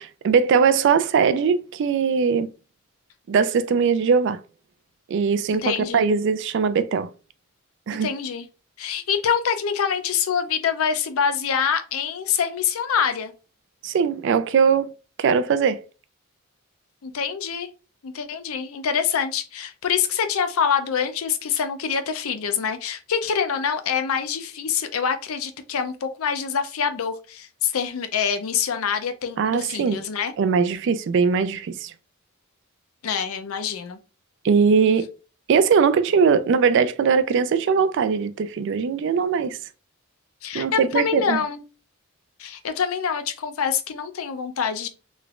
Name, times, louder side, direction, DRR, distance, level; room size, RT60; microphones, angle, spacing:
voice 1, 0.0-2.5 3.3-4.4 5.1-7.1 7.9-8.1 13.8-14.9 15.2-15.8 29.4-30.0 30.4-31.9 34.4-35.1 35.5-39.6 40.5-41.4, right 6 dB, 55° right, 0.3 m, -20 dB
voice 2, 5.6-6.1 7.9-8.4 8.8-13.3 17.0-17.7 18.0-30.3 33.0-34.0 40.4-41.6 42.4-44.9, left 7 dB, 75° left, 0.5 m, -25 dB
3.2 x 3.0 x 2.4 m
head